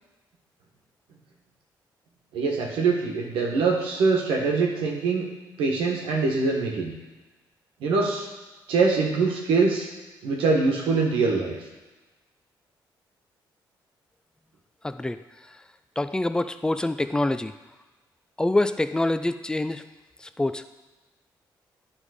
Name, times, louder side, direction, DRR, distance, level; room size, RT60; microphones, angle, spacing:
voice 1, 2.3-5.3 5.6-6.9 7.8-8.3 8.7-9.9 10.2-11.5, right 4 dB, 90° right, 0 dB, 1.3 m, -23 dB
voice 2, 14.8-15.2 16.0-17.5 18.4-19.8 20.2-20.6, left 2 dB, 10° left, 11 dB, 0.4 m, -25 dB
9.5 x 3.5 x 4.9 m, 1.2 s
cardioid pair, 75°, 9 cm